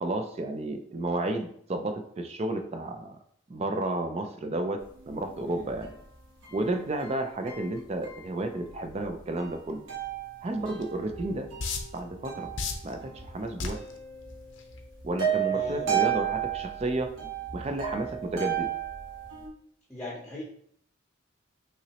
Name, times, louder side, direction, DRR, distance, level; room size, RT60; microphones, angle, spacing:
voice 1, 0.0-3.2 3.5-4.8 5.1-5.9 6.5-9.8 10.4-11.5 11.9-12.5 12.8-13.8 15.0-17.1 17.5-18.7, right 2 dB, 30° right, 6 dB, 0.4 m, -32 dB
sound 1, 4.8-19.5, right 10 dB, 70° right, 1.2 m, -34 dB
voice 2, 10.5-10.8 15.5-16.0 19.9-20.4, left 1 dB, 10° left, -6 dB, 0.7 m, -40 dB
sound 2, 10.8-10.9 11.6-12.0 12.6-12.9 13.6-13.9 14.6-14.8, left 4 dB, 65° left, 0.6 m, -31 dB
5.8 x 2.9 x 2.9 m, 0.67 s
head